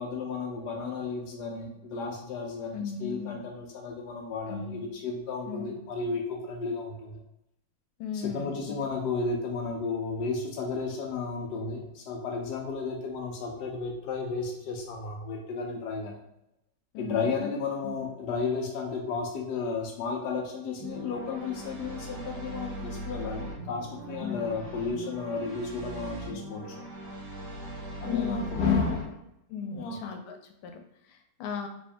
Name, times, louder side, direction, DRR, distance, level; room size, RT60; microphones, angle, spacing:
voice 1, 0.0-7.2 8.1-16.2 17.0-26.6 28.0-29.2 29.6-30.0, left 4 dB, 70° left, 0 dB, 1.0 m, -33 dB
voice 2, 2.7-3.4 4.5-4.8 5.5-5.8 8.0-8.7 16.9-17.5 17.8-18.1 24.2-24.4 28.1-28.5 29.5-30.4 30.6-30.7 31.1-31.7, left 6 dB, 90° left, 5 dB, 1.5 m, -36 dB
sound 1, 20.8-29.0, right 1 dB, 65° right, 1.4 m, -40 dB
3.5 x 2.6 x 3.3 m, 0.82 s
omnidirectional pair, 2.3 m